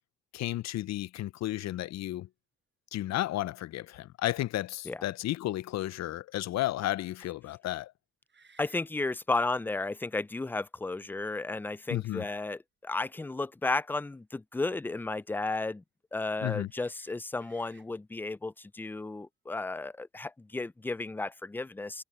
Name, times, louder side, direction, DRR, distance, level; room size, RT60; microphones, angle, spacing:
voice 1, 0.3-2.3 2.9-7.9 11.9-12.2 16.4-16.7, left 15 dB, 60° left, 0.5 m, -33 dB
sound 1, 3.0-3.1 3.6-3.8 8.2-8.9 10.1-10.2 11.2-12.0 13.9-14.1 16.7-17.9, right 5 dB, 35° right, 4.8 m, -63 dB
voice 2, 8.6-15.8 16.1-22.0, left 3 dB, 5° left, 0.3 m, -33 dB
cardioid pair, 90°, 30 cm